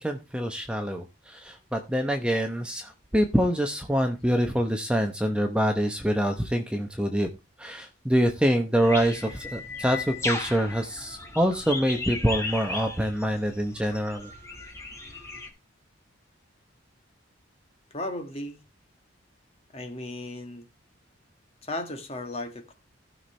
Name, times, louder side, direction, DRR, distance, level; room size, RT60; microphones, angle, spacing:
voice 1, 0.0-7.3 7.6-14.3, equal, 5° right, 0.8 m, -25 dB
sound 1, 8.8-15.5, left 3 dB, 15° left, 1.9 m, -36 dB
voice 2, 17.9-18.6 19.7-20.6 21.6-22.7, left 1 dB, 30° left, 1.6 m, -35 dB
16.0 x 5.9 x 3.3 m
head